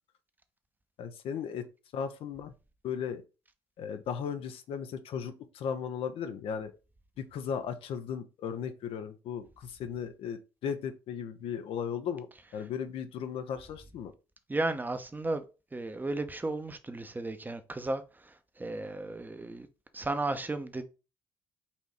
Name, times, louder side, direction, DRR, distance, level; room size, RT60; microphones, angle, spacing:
voice 1, 1.0-1.7 1.9-2.5 2.8-3.2 3.8-6.7 7.2-12.3 12.5-14.1, left 7 dB, 65° left, 0.6 m, -36 dB
voice 2, 14.5-15.4 15.7-19.7 19.9-20.8, right 2 dB, 20° right, 0.8 m, -34 dB
4.2 x 2.6 x 4.7 m
hypercardioid pair, 60°, 10 cm